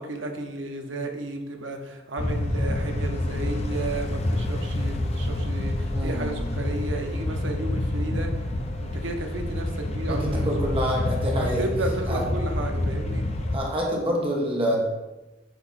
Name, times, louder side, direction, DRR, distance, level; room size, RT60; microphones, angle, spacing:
voice 1, 0.0-8.5 8.8-10.8 11.4-13.3, right 2 dB, 80° right, 3 dB, 0.9 m, -33 dB
sound 1, 2.2-13.6, left 1 dB, 35° left, 0.6 m, -28 dB
voice 2, 5.9-6.4 10.1-11.6 12.1-12.2 13.5-14.8, equal, 30° right, -2 dB, 1.3 m, -27 dB
8.1 x 3.0 x 4.2 m, 1.1 s
head